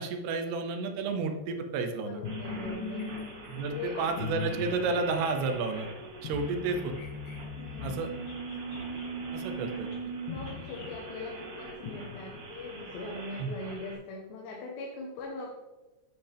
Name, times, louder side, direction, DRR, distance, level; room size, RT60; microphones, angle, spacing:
voice 1, 0.0-2.2 3.5-5.9 6.2-6.9 7.8-8.1 9.3-9.9 13.4-13.5, right 4 dB, 80° right, 6 dB, 2.8 m, -31 dB
voice 2, 2.0-3.1 3.5-4.1 7.6-8.1 10.2-15.6, left 2 dB, 90° left, -2 dB, 3.4 m, -41 dB
sound 1, 2.2-13.0, left 2 dB, 70° left, 2.4 m, -40 dB
sound 2, 2.2-13.9, right 3 dB, 60° right, 4.0 m, -46 dB
Bird vocalization bird call bird song, 2.8-3.6 4.0-4.7 5.2-5.8 6.4-7.4 8.2-9.1 9.9-10.0 10.4-10.9, left 3 dB, 50° left, 2.2 m, -54 dB
10.0 x 8.1 x 3.5 m, 1.1 s
omnidirectional pair, 4.8 m